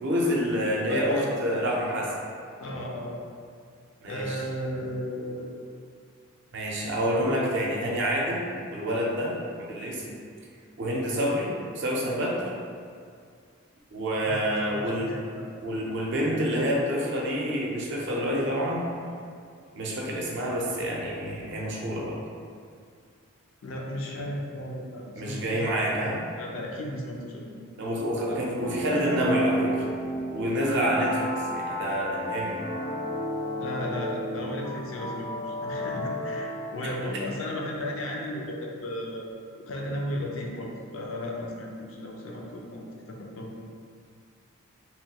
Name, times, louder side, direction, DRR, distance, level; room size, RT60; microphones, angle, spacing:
voice 1, 0.0-2.1 4.0-4.4 6.5-8.4 8.7-10.1 10.8-12.4 13.9-15.1 15.6-18.9 19.7-22.2 25.2-26.2 27.8-29.8 30.3-32.6, equal, 55° right, -3 dB, 0.5 m, -28 dB
voice 2, 0.9-1.4 2.6-3.2 4.1-5.6 14.3-14.4 14.7-15.4 23.6-26.1 26.4-27.5 33.6-39.2 39.6-43.6, left 1 dB, 65° left, -1 dB, 0.4 m, -35 dB
sound 1, 28.6-37.2, equal, 5° left, 0.4 m, -32 dB
3.0 x 2.2 x 2.8 m, 2.2 s
head